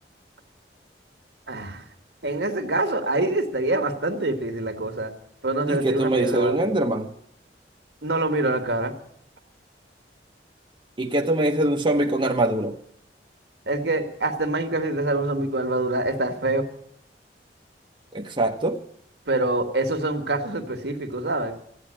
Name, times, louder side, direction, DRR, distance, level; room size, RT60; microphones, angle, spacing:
voice 1, 1.5-1.8 2.2-5.1 5.4-6.7 8.0-8.9 13.7-16.7 19.3-21.5, right 2 dB, 75° right, 1.8 m, -25 dB
voice 2, 5.7-7.1 11.0-12.8 18.1-18.8, right 1 dB, 30° right, 1.0 m, -23 dB
14.5 x 9.5 x 8.8 m
head